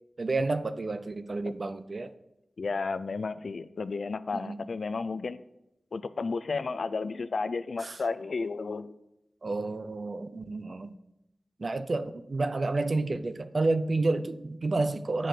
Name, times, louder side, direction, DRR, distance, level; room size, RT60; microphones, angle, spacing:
voice 1, 0.2-2.1 4.3-4.6 7.8-8.0 9.4-10.9 11.6-15.3, right 3 dB, 50° right, 11 dB, 0.6 m, -30 dB
voice 2, 2.6-5.4 5.9-9.0, left 4 dB, 70° left, 13 dB, 0.4 m, -32 dB
8.9 x 4.9 x 5.9 m, 0.87 s
wide cardioid pair, 75°, 0 cm